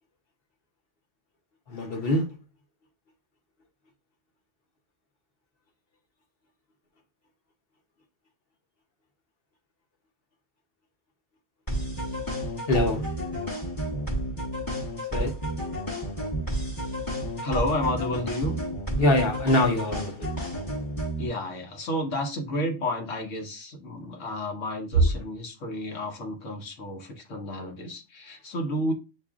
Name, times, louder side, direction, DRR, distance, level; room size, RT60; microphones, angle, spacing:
voice 1, 1.7-2.2 12.7-13.0 15.1-15.3 19.0-20.3, left 1 dB, 55° left, 1.0 m, -23 dB
sound 1, 11.7-21.3, right 1 dB, 20° left, 0.9 m, -31 dB
voice 2, 17.4-18.6 21.2-28.9, left 1 dB, 85° left, 1.3 m, -31 dB
7.4 x 2.6 x 2.4 m
omnidirectional pair, 1.3 m